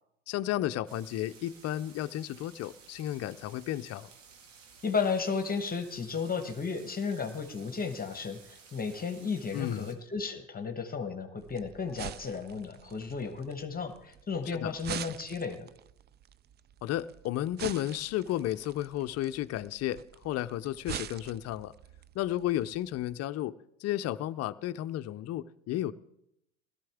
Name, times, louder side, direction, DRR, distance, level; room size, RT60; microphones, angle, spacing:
voice 1, 0.3-4.1 9.5-9.9 14.5-14.7 16.8-21.7 22.1-23.5 23.8-25.9, left 13 dB, 45° left, 12 dB, 0.6 m, -33 dB
sound 1, 0.9-9.9, right 5 dB, 85° right, 1.9 m, -55 dB
voice 2, 4.8-15.7, left 5 dB, 25° left, 7 dB, 1.3 m, -34 dB
sound 2, 11.4-23.1, right 10 dB, 30° right, 0.4 m, -45 dB
17.0 x 13.0 x 3.6 m, 0.80 s
hypercardioid pair, 80°, 36 cm